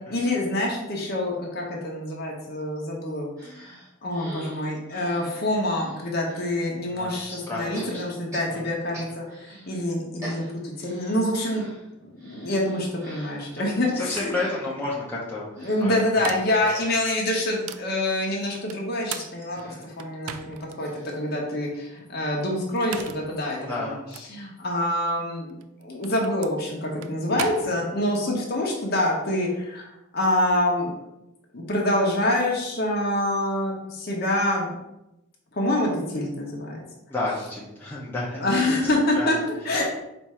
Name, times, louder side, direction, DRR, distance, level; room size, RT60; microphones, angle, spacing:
voice 1, 0.1-3.3 3.6-3.7 4.0-11.7 12.0-14.3 15.6-20.9 21.2-24.0 24.3-25.5 25.8-29.9 30.1-30.9 31.5-34.7 35.5-36.8 38.4-39.8, left 1 dB, 45° left, -2 dB, 0.8 m, -26 dB
sound 1, 3.4-6.6 7.7-9.7 10.0-21.9 22.3-22.4 22.6-22.7, equal, 15° right, 1.4 m, -46 dB
voice 2, 6.9-8.0 8.5-8.7 13.5-15.4 15.8-16.2 19.7-19.8 23.6-24.0 37.1-38.4 38.8-39.3, left 2 dB, 10° left, -6 dB, 0.7 m, -31 dB
sound 2, 13.8-13.9 14.1-14.4 15.8-16.7 17.3-17.9 18.7-20.8 21.3-21.4 22.6-23.3 24.1-24.3 25.5-28.2, right 9 dB, 90° right, 0.3 m, -38 dB
4.2 x 2.6 x 4.7 m, 0.90 s
head